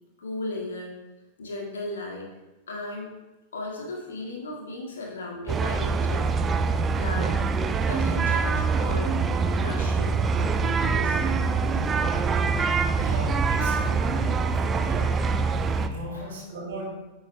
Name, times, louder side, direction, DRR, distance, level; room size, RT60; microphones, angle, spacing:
voice 1, 0.2-0.9 1.4-2.3 2.7-3.1 3.5-6.3 6.9-7.3 7.8-9.1 9.6-10.2 10.6-11.3 16.1-16.4, left 2 dB, 70° left, -1 dB, 1.8 m, -36 dB
sound 1, 5.5-15.9, right 4 dB, 20° right, 0.4 m, -24 dB
voice 2, 12.9-14.1 14.8-15.4 15.7-16.8, right 2 dB, 60° right, -2 dB, 2.8 m, -37 dB
10.5 x 7.9 x 2.2 m, 1.1 s
figure-of-eight pair, 90°, 0 cm